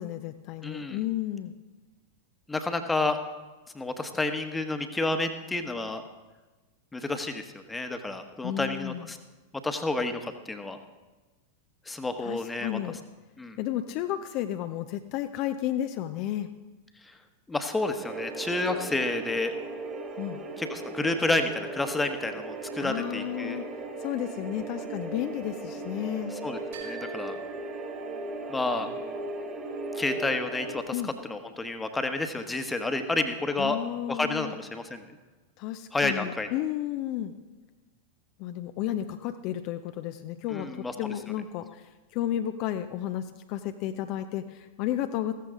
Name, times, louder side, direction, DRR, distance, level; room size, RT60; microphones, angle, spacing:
voice 1, 0.0-1.6 8.4-9.2 12.2-13.0 13.6-16.5 20.2-20.4 22.8-23.7 24.0-26.3 30.9-31.1 33.6-34.6 35.6-37.3 38.4-45.3, left 12 dB, 45° left, 8 dB, 0.6 m, -32 dB
voice 2, 0.6-1.0 2.5-3.2 3.7-6.0 6.9-9.2 9.6-10.8 11.9-12.8 13.4-13.6 17.5-19.5 20.6-23.6 26.4-27.4 28.5-28.9 29.9-33.8 34.1-35.0 35.9-36.5 40.5-40.9, left 2 dB, 10° left, 7 dB, 1.2 m, -30 dB
sound 1, 18.0-30.8, right 2 dB, 20° right, 2.0 m, -37 dB
sound 2, 26.7-28.6, right 6 dB, 60° right, 4.7 m, -47 dB
15.5 x 14.0 x 3.8 m, 1.2 s
figure-of-eight pair, 90°, 0 cm